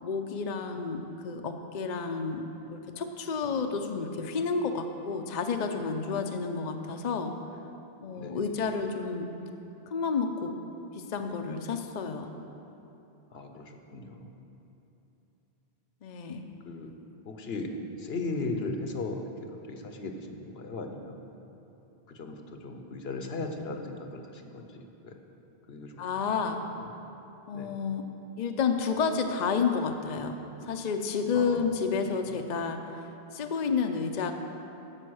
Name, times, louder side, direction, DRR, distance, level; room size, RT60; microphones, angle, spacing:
voice 1, 0.0-2.4 2.7-7.3 8.0-9.3 9.9-10.5 11.0-12.3 16.0-16.5 26.0-26.6 27.5-28.0 28.4-30.4 30.6-34.4, left 5 dB, 50° left, 5 dB, 0.7 m, -30 dB
voice 2, 13.3-14.3 16.7-16.9 17.2-17.7 18.0-19.2 19.7-21.2 22.1-24.7 25.0-25.1 25.7-26.0 27.5-27.7 31.3-31.7, left 3 dB, 75° left, 4 dB, 1.2 m, -37 dB
15.0 x 5.6 x 6.3 m, 2.9 s
omnidirectional pair, 1.0 m